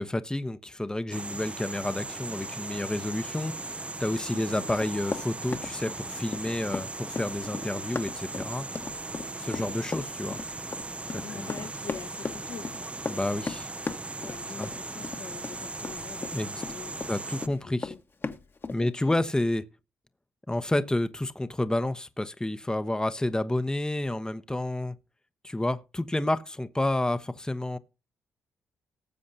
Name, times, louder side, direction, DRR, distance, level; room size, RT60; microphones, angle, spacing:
voice 1, 0.0-8.7 9.4-10.4 11.1-11.7 13.1-13.7 14.6-14.7 16.3-16.6 17.1-17.9 18.7-19.6 20.5-24.9 25.4-27.8, left 1 dB, 10° left, 1.0 m, -30 dB
Swifts flyining into cave, 1.1-17.5, right 2 dB, 20° right, 0.7 m, -38 dB
sound 1, 2.6-3.7 4.2-8.5 9.0-9.8, right 5 dB, 60° right, 1.9 m, -52 dB
voice 2, 4.3-4.7 9.4-9.7 11.1-12.9 14.2-17.2 17.6-18.0 18.8-19.2, left 6 dB, 70° left, 1.6 m, -44 dB
Run, 4.7-17.1 17.4-18.8, left 4 dB, 35° left, 1.4 m, -36 dB
18.5 x 7.5 x 2.8 m
hypercardioid pair, 45°, 6 cm